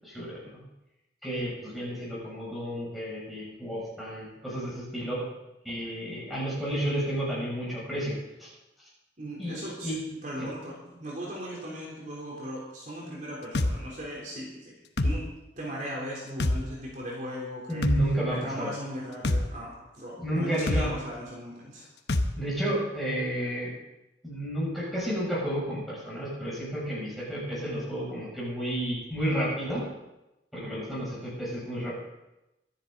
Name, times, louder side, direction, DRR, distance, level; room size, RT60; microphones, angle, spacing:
voice 1, 0.0-0.4 1.2-5.2 5.6-8.1 8.4-8.5 9.4-10.0 17.7-18.7 20.2-20.9 22.4-23.7 24.2-29.8 30.5-32.0, right 1 dB, ahead, -7 dB, 7.2 m, -31 dB
voice 2, 9.2-9.9 10.2-14.7 15.0-15.3 15.6-17.9 18.3-21.9, equal, 45° right, -4 dB, 3.6 m, -38 dB
sound 1, 13.6-13.7 15.0-15.2 16.4-16.6 17.8-18.0 19.2-19.4 20.7-20.9 22.1-22.3, left 1 dB, 70° left, 1.0 m, -24 dB
24.0 x 10.5 x 4.0 m, 0.95 s
head